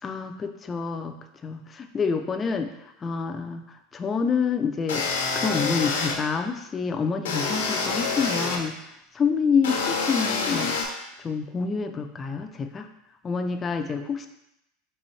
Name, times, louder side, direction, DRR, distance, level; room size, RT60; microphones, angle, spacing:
voice 1, 0.0-1.2 1.4-5.1 5.4-8.8 9.1-10.8 11.2-12.9 13.2-14.3, left 5 dB, 25° left, 6 dB, 0.4 m, -27 dB
sound 1, 4.9-6.2 7.2-8.6 9.6-10.8, left 4 dB, 90° left, 0.8 m, -27 dB
4.1 x 3.7 x 3.2 m, 0.85 s
supercardioid pair, 120°, 0 cm